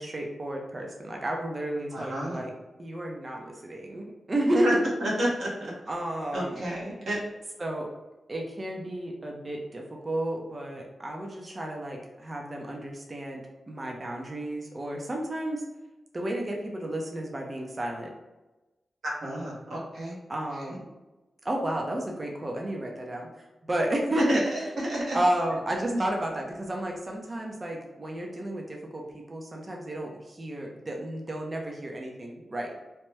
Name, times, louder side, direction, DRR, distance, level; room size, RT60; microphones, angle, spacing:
voice 1, 0.0-2.5 2.8-4.8 5.9-6.7 7.6-7.9 8.3-15.6 16.1-18.1 20.3-20.8 21.4-24.4 25.1-32.7, right 1 dB, 35° right, 0 dB, 0.6 m, -32 dB
voice 2, 1.9-2.4 4.6-4.7 5.0-5.7 6.3-7.2 19.0-20.2 20.7-20.8 24.2-25.2 25.9-26.0, right 1 dB, 70° right, -5 dB, 1.1 m, -31 dB
2.9 x 2.2 x 3.2 m, 1.1 s
cardioid pair, 65°, 0 cm